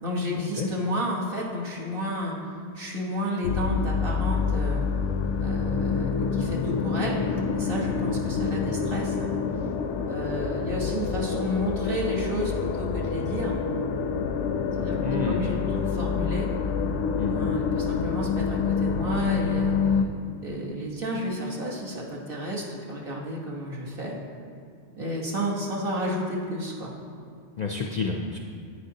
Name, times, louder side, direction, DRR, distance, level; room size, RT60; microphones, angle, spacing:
voice 1, 0.0-2.4 2.7-4.8 5.4-7.2 7.5-9.3 10.1-13.5 14.7-16.5 17.3-20.0 20.4-24.1 24.9-26.9, equal, 50° right, -2 dB, 1.4 m, -31 dB
sound 1, 3.4-20.0, left 5 dB, 85° left, 0.9 m, -27 dB
voice 2, 15.0-15.5 17.2-17.4 27.6-28.4, left 4 dB, 55° left, 2 dB, 0.5 m, -29 dB
9.9 x 9.1 x 2.8 m, 2.3 s
omnidirectional pair, 1.2 m